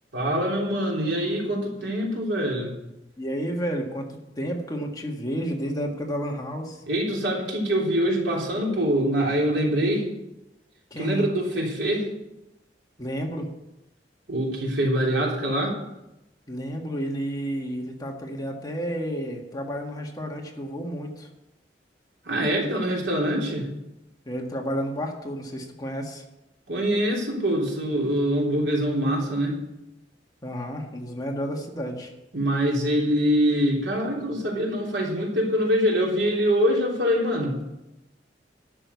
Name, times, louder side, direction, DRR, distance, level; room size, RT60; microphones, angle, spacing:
voice 1, 0.1-2.7 6.9-10.1 11.0-12.1 14.3-15.8 22.3-23.7 26.7-29.6 32.3-37.6, equal, 85° right, -2 dB, 3.4 m, -24 dB
voice 2, 3.2-4.1 4.4-6.8 10.9-11.3 13.0-13.5 16.5-21.3 24.3-26.2 30.4-32.1, equal, 20° left, 1 dB, 1.7 m, -31 dB
11.0 x 6.8 x 8.2 m, 0.92 s
head